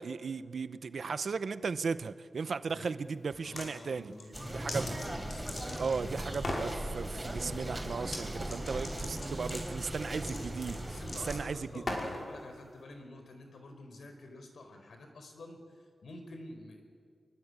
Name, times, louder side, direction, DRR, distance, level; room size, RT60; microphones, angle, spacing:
voice 1, 0.0-4.1 4.5-4.9 5.8-11.0 11.3-12.0, right 5 dB, 65° right, 13 dB, 0.9 m, -36 dB
voice 2, 2.7-3.0 3.4-6.5 8.5-9.2 10.8-16.8, left 2 dB, 75° left, 6 dB, 4.8 m, -50 dB
sound 1, 3.3-3.7 4.1-6.0 6.3-6.7 8.0-8.2 8.5-12.2, left 2 dB, 50° left, 5.6 m, -39 dB
sound 2, 4.3-11.4, right 1 dB, 15° right, 5.3 m, -38 dB
25.0 x 23.5 x 9.8 m, 2.1 s
wide cardioid pair, 125°, 0 cm